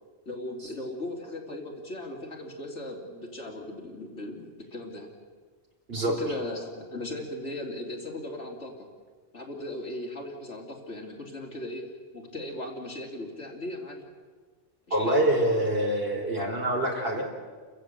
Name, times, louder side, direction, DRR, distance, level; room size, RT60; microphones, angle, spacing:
voice 1, 0.3-5.1 6.0-8.9 9.3-11.8 12.1-14.0 14.9-15.2, left 1 dB, 80° left, 0 dB, 3.6 m, -37 dB
voice 2, 14.9-17.3, right 1 dB, 55° right, 0 dB, 4.7 m, -25 dB
30.0 x 15.0 x 8.1 m, 1.5 s
omnidirectional pair, 1.2 m